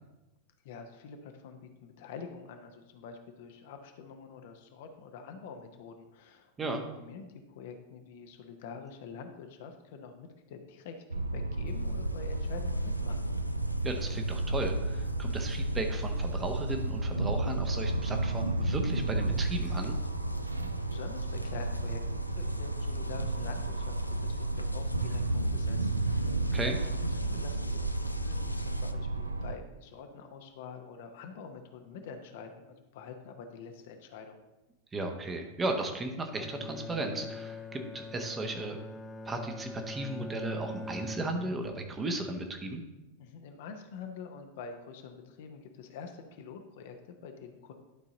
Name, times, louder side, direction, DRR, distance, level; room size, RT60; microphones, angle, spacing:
voice 1, 0.6-13.3 20.4-26.9 27.2-34.4 43.2-47.7, left 5 dB, 50° left, 5 dB, 0.8 m, -46 dB
sound 1, 11.1-29.6, right 2 dB, 80° right, 0.4 m, -32 dB
sound 2, 11.7-28.9, equal, 85° left, 0.4 m, -42 dB
voice 2, 13.8-19.9 26.5-26.8 34.9-38.8 39.2-42.8, right 2 dB, 15° right, 4 dB, 1.0 m, -35 dB
Bowed string instrument, 36.3-41.8, left 2 dB, 10° left, 0.4 m, -43 dB
11.5 x 4.0 x 3.9 m, 1.0 s
figure-of-eight pair, 90°, 0 cm